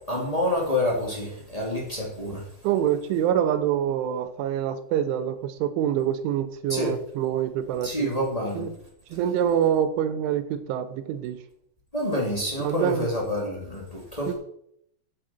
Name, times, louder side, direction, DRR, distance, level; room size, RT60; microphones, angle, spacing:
voice 1, 0.1-2.5 6.7-6.9 7.8-8.7 11.9-14.3, left 1 dB, 20° left, -2 dB, 1.0 m, -27 dB
voice 2, 2.6-8.2 8.5-8.7 9.1-11.4 12.6-13.1 14.3-14.4, right 9 dB, 90° right, 11 dB, 3.4 m, -26 dB
13.0 x 7.5 x 4.4 m, 0.70 s
omnidirectional pair, 5.4 m